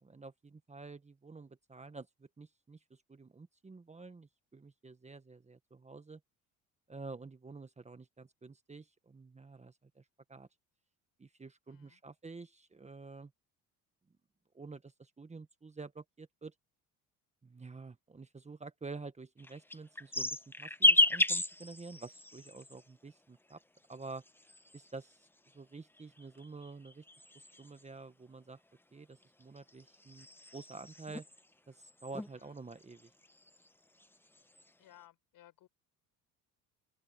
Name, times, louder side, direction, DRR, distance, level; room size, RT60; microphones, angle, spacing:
voice 1, 0.0-2.1 2.4-6.2 6.9-10.0 10.3-10.5 11.2-13.3 14.5-16.5 17.4-23.6 23.9-24.2 24.7-25.3 25.5-27.0 27.3-28.6 28.9-30.3 30.5-31.3 31.7-33.1, right 3 dB, 15° right, 1.5 m, -49 dB
voice 2, 11.7-12.0 32.3-32.6 34.8-35.7, left 13 dB, 60° left, 7.8 m, -60 dB
sound 1, 19.4-22.8 23.8-25.1 26.0-27.8 29.2-31.4 31.8-32.3 32.6-33.7 34.0-34.6, left 1 dB, 5° left, 1.1 m, -33 dB
supercardioid pair, 90°, 38 cm